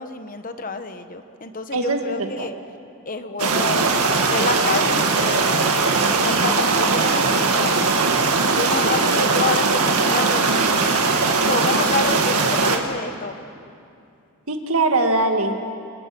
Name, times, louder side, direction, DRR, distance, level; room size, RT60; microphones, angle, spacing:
voice 1, 0.0-2.5 3.1-3.9 4.3-5.6 6.2-7.9 8.5-10.7 11.5-13.3, left 3 dB, 40° left, 9 dB, 1.1 m, -28 dB
voice 2, 1.7-2.5 9.0-9.3 14.5-15.7, right 2 dB, 70° right, 4 dB, 2.1 m, -22 dB
sound 1, 3.4-12.8, right 4 dB, 85° right, 2.0 m, -19 dB
27.5 x 27.0 x 6.1 m, 2.5 s
head